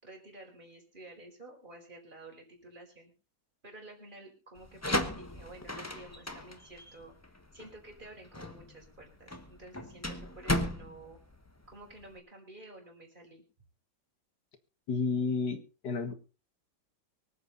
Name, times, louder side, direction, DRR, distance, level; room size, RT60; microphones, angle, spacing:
voice 1, 0.0-3.1 3.6-7.1 7.5-11.2 11.7-13.4, right 2 dB, 25° right, 1 dB, 4.7 m, -51 dB
sound 1, 4.6-12.2, left 1 dB, 10° left, 1.0 m, -36 dB
voice 2, 14.9-16.1, left 4 dB, 60° left, 8 dB, 2.2 m, -31 dB
24.5 x 8.1 x 4.0 m, 0.33 s
omnidirectional pair, 2.0 m